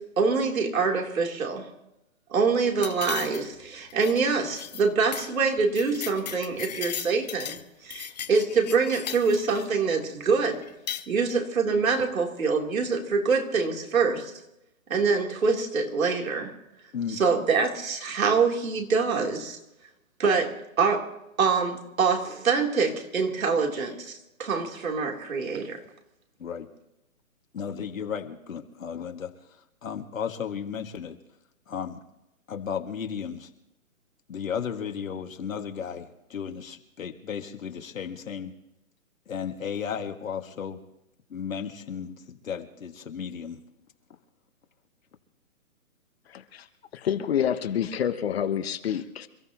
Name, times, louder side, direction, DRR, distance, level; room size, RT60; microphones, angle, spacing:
voice 1, 0.0-1.7 2.3-10.6 11.1-14.3 14.9-16.5 17.2-19.6 20.2-21.1 21.4-25.8, right 4 dB, 75° right, 0 dB, 3.6 m, -25 dB
sound 1, 2.8-3.6 3.9-4.2 4.5-4.8 5.1-5.3 5.6-7.6 7.9-9.7 10.6-11.1, left 9 dB, 30° left, 0.6 m, -37 dB
voice 2, 27.5-31.2 31.7-32.0 32.5-33.5 34.3-38.5 39.3-40.8 41.3-43.6, left 7 dB, 70° left, 5 dB, 2.1 m, -34 dB
voice 3, 46.3-46.7 46.9-49.3, left 9 dB, 45° left, 9 dB, 1.3 m, -28 dB
27.5 x 14.0 x 3.0 m, 0.88 s
hypercardioid pair, 150°, 42 cm